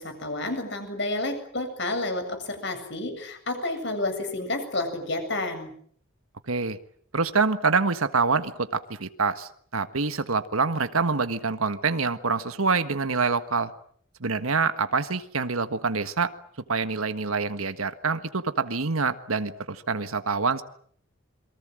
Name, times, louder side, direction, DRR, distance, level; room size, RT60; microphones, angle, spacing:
voice 1, 0.0-5.7, left 2 dB, 55° left, 7 dB, 7.7 m, -30 dB
voice 2, 6.5-6.8 7.1-13.7 14.2-16.3 16.7-20.6, right 4 dB, 85° right, 10 dB, 1.5 m, -26 dB
28.0 x 23.5 x 7.7 m, 0.62 s
head